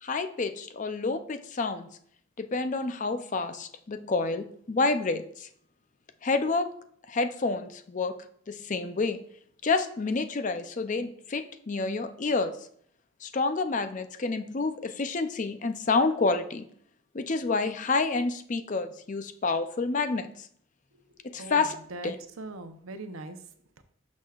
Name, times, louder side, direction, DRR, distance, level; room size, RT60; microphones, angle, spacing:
voice 1, 0.0-1.9 2.4-5.5 6.2-6.7 7.1-8.2 8.5-9.2 9.6-12.6 13.2-16.7 17.1-20.5 21.2-21.8 22.0-22.2, left 3 dB, 35° left, 9 dB, 0.5 m, -29 dB
voice 2, 21.4-23.4 23.8-23.9, right 2 dB, 75° right, 8 dB, 0.8 m, -41 dB
11.5 x 6.3 x 2.4 m, 0.64 s
head